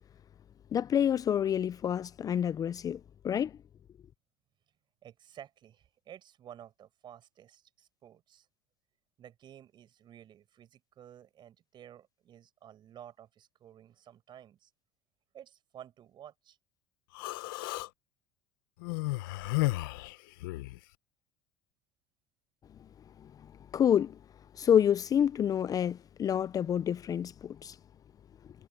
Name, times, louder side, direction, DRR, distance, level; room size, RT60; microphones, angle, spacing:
voice 1, 0.7-3.5 23.7-24.2 24.6-27.8, left 9 dB, 35° left, 0.5 m, -28 dB
voice 2, 5.0-8.5 9.2-14.7 15.3-16.6, right 10 dB, 45° right, 8.0 m, -52 dB
Human voice, 17.1-17.9 18.8-20.8, left 21 dB, 75° left, 1.0 m, -33 dB
hypercardioid pair, 95°, 11 cm